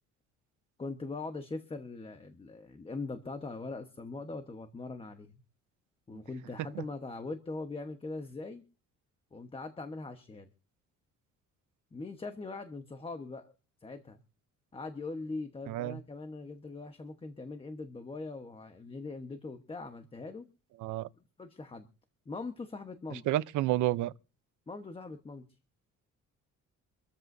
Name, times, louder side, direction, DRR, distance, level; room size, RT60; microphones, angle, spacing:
voice 1, 0.8-5.3 6.1-8.6 9.3-10.5 11.9-13.5 13.8-14.2 14.7-20.5 21.4-21.9 22.3-23.2 24.7-25.4, left 3 dB, 20° left, 1.2 m, -41 dB
voice 2, 15.7-16.0 20.8-21.1 23.1-24.1, right 15 dB, 75° right, 0.8 m, -30 dB
25.5 x 14.0 x 2.7 m
cardioid pair, 140°, 30 cm